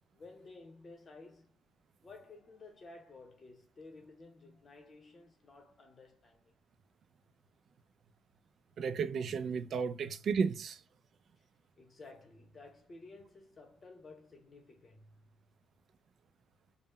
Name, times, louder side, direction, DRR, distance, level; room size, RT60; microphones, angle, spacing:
voice 1, 0.1-1.7 2.0-6.5 11.4-11.5 11.8-15.3, left 3 dB, 40° left, 0.9 m, -54 dB
voice 2, 8.8-10.8, right 6 dB, 60° right, 0.3 m, -33 dB
2.2 x 2.0 x 3.6 m
cardioid pair, 90°, 0 cm